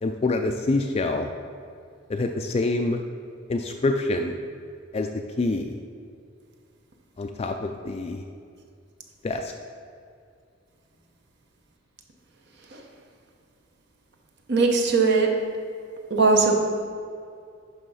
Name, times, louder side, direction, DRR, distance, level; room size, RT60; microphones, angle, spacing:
voice 1, 0.0-1.3 2.1-3.0 3.5-4.3 4.9-5.8 7.2-8.2 9.2-9.5, left 2 dB, 30° left, 4 dB, 0.3 m, -26 dB
voice 2, 14.5-15.3 16.1-16.5, right 4 dB, 60° right, 2 dB, 0.9 m, -19 dB
10.5 x 3.5 x 5.5 m, 2.3 s
head